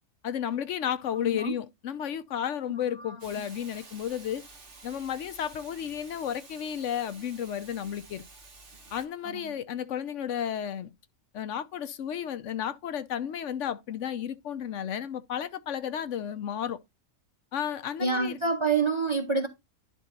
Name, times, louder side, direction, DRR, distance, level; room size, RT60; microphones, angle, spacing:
voice 1, 0.2-4.4 4.8-8.2 8.9-10.9 11.3-16.8 17.5-18.4, left 9 dB, 70° left, 1.0 m, -33 dB
voice 2, 1.1-1.6 2.9-3.2 9.2-9.6 18.0-19.5, right 4 dB, 30° right, 0.6 m, -28 dB
Hiss, 3.2-9.1, right 3 dB, 60° right, 1.8 m, -51 dB
11.0 x 3.8 x 4.0 m
omnidirectional pair, 1.4 m